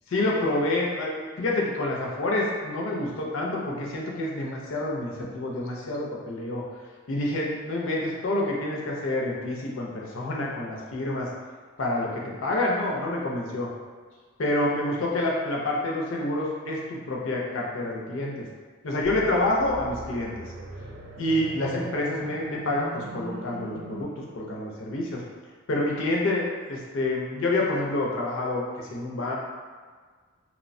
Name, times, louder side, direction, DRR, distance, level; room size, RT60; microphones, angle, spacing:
voice 1, 0.1-6.6 7.1-11.3 11.8-13.7 14.4-18.5 18.8-20.3 21.2-25.2 25.7-29.4, left 1 dB, 65° left, -3 dB, 0.5 m, -28 dB
sound 1, 19.0-24.0, right 1 dB, 55° right, 0.3 m, -40 dB
2.9 x 2.0 x 2.5 m, 1.5 s
head